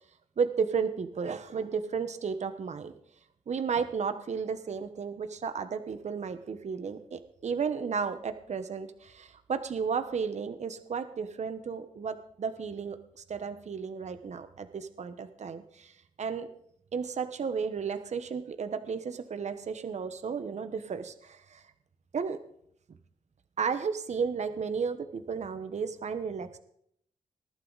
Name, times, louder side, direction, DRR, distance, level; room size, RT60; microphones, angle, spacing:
voice 1, 0.4-2.9 3.5-16.5 16.9-21.6 22.1-22.4 23.6-26.6, right 6 dB, 50° right, 10 dB, 1.2 m, -33 dB
20.0 x 11.5 x 4.1 m, 0.71 s
cardioid pair, 85°, 14 cm